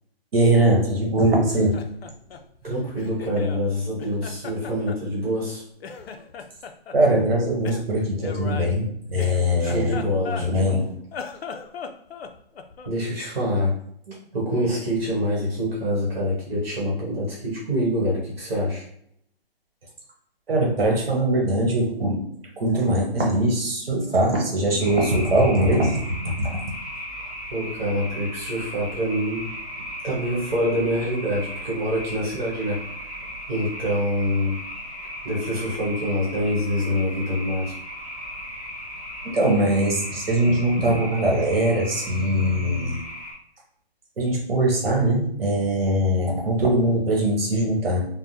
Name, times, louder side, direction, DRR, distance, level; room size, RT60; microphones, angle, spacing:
voice 1, 0.3-1.8 6.9-10.0 10.4-10.8 20.5-22.2 22.6-26.6 39.2-43.0 44.2-48.1, right 1 dB, 65° right, 1 dB, 1.0 m, -21 dB
Laughter, 1.4-3.6 4.0-5.5 5.8-7.0 7.6-10.7 11.0-13.0, left 5 dB, 75° left, 0.5 m, -38 dB
voice 2, 2.6-5.6 9.6-11.0 12.8-13.7 14.1-18.9 27.5-29.4 30.0-32.8 33.5-34.6 35.2-37.7, equal, 45° right, -4 dB, 1.2 m, -25 dB
sound 1, 24.8-43.3, equal, 15° right, 0.9 m, -36 dB
3.4 x 2.1 x 2.6 m, 0.68 s
hypercardioid pair, 175°, 31 cm